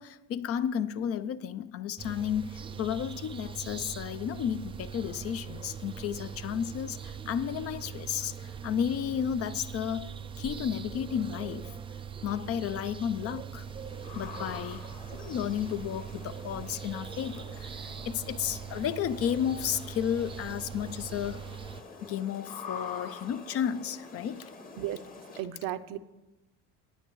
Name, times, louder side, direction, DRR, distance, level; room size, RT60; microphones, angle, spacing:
voice 1, 0.0-11.7 12.2-13.6 14.1-14.9 15.1-21.4 22.0-24.5, left 9 dB, 45° left, 0.5 m, -33 dB
sound 1, 2.0-21.8, right 7 dB, 15° right, 0.3 m, -42 dB
sound 2, 13.6-25.4, left 5 dB, 25° left, 1.1 m, -46 dB
voice 2, 25.4-26.0, right 13 dB, 70° right, 0.7 m, -34 dB
19.5 x 8.9 x 3.1 m
cardioid pair, 125°, 34 cm